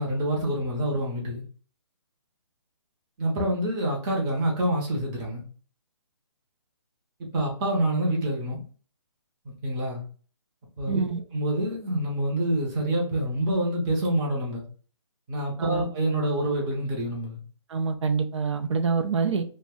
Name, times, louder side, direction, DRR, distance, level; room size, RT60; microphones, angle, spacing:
voice 1, 0.0-1.4 3.2-5.4 7.3-8.6 9.4-10.0 10.8-11.0 11.3-14.6 15.3-17.4, right 1 dB, 15° right, 0.5 m, -27 dB
voice 2, 10.9-11.2 15.6-15.9 17.7-19.4, right 5 dB, 70° right, 0.5 m, -26 dB
2.5 x 2.1 x 3.5 m
hypercardioid pair, 165°, 15 cm